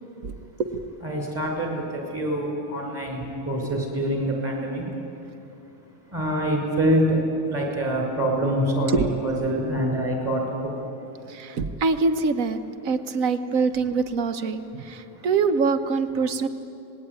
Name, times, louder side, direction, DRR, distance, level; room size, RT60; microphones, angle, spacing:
voice 1, 1.0-4.8 6.1-7.1 7.5-10.4, equal, 10° right, 0 dB, 5.6 m, -25 dB
voice 2, 11.3-16.5, right 4 dB, 80° right, 9 dB, 1.5 m, -24 dB
26.0 x 19.5 x 9.7 m, 2.8 s
omnidirectional pair, 1.4 m